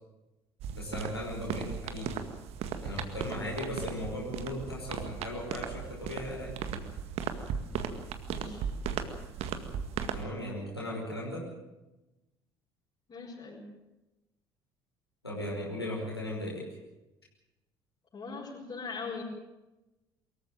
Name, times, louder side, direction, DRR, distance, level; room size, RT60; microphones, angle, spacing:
sound 1, 0.6-10.2, right 7 dB, 55° right, 1.9 m, -37 dB
voice 1, 0.7-2.1 2.8-6.5 10.1-11.5 15.2-16.7, left 1 dB, 90° left, -4 dB, 5.4 m, -37 dB
voice 2, 8.3-8.6 13.1-13.6 18.1-19.2, left 4 dB, 40° left, -7 dB, 7.4 m, -40 dB
23.5 x 14.5 x 9.2 m, 1.0 s
figure-of-eight pair, 55°, 13 cm